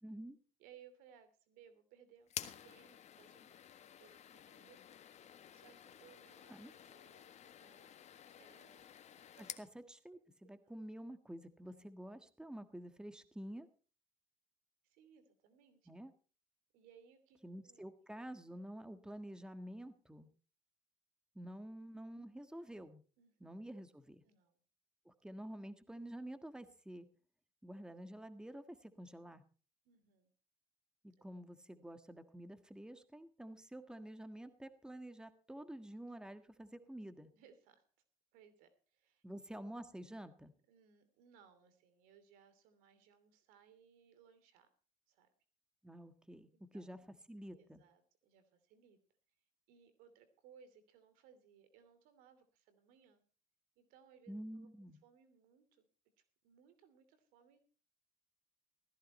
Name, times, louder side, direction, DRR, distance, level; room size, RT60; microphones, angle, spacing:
voice 1, 0.0-0.4 6.5-6.7 9.6-13.7 15.9-16.1 17.4-20.3 21.3-23.0 23.4-24.2 25.0-27.1 27.6-29.4 31.0-37.3 39.2-40.5 45.8-47.0 47.3-47.8 54.3-55.0, right 1 dB, 5° right, 10 dB, 1.6 m, -49 dB
voice 2, 0.6-4.8 5.1-7.9 8.4-8.9 9.4-9.6 10.4-10.7 14.8-15.9 16.7-17.8 23.2-23.5 24.2-24.6 29.8-30.3 37.3-37.8 38.3-39.2 40.7-44.7 45.1-45.3 46.7-46.9 47.5-49.0 49.7-53.2 53.8-54.7 55.0-55.9 56.2-57.7, right 8 dB, 80° right, 12 dB, 2.9 m, -65 dB
sound 1, 2.3-9.7, left 9 dB, 50° left, 1.6 m, -52 dB
16.5 x 14.5 x 4.2 m, 0.38 s
supercardioid pair, 75°, 14 cm